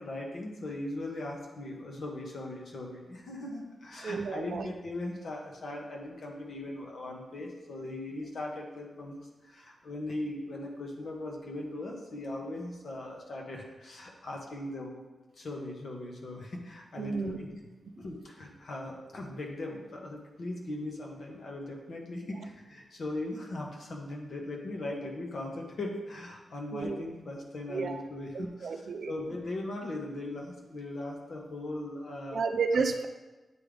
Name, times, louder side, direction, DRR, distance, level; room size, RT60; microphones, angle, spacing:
voice 1, 0.0-15.0 15.4-17.5 18.0-32.4, left 1 dB, 65° left, -1 dB, 1.2 m, -39 dB
voice 2, 4.0-4.7 17.0-17.4 26.7-27.0 27.7-28.0 28.3-29.1 32.3-33.1, right 5 dB, 70° right, 7 dB, 0.5 m, -31 dB
8.8 x 3.8 x 3.4 m, 1.1 s
wide cardioid pair, 95°, 0 cm